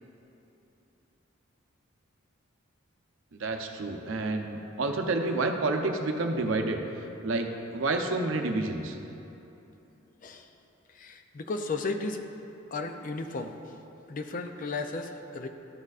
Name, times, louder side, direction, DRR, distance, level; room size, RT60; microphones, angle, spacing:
voice 1, 3.3-6.8 7.2-9.0, right 2 dB, 75° right, 4 dB, 0.6 m, -29 dB
voice 2, 10.9-12.2 12.7-13.8 14.1-15.5, left 3 dB, 40° left, 6 dB, 0.4 m, -34 dB
12.0 x 6.5 x 2.4 m, 3.0 s
head